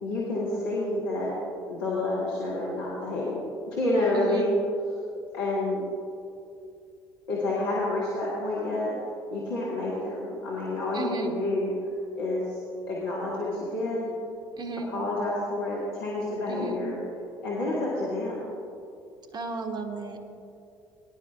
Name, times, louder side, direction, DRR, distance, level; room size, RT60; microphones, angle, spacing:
voice 1, 0.0-1.3 1.7-3.4 3.7-4.6 5.3-5.8 7.3-8.9 9.3-11.7 12.1-12.6 12.9-14.1 14.9-17.0 17.4-18.4, left 2 dB, 75° left, -7 dB, 2.1 m, -29 dB
voice 2, 4.2-4.5 10.9-11.3 14.6-14.9 16.5-16.8 19.3-20.3, right 3 dB, 40° right, 5 dB, 1.5 m, -34 dB
18.0 x 11.5 x 2.4 m, 2.6 s
hypercardioid pair, 55°, 12 cm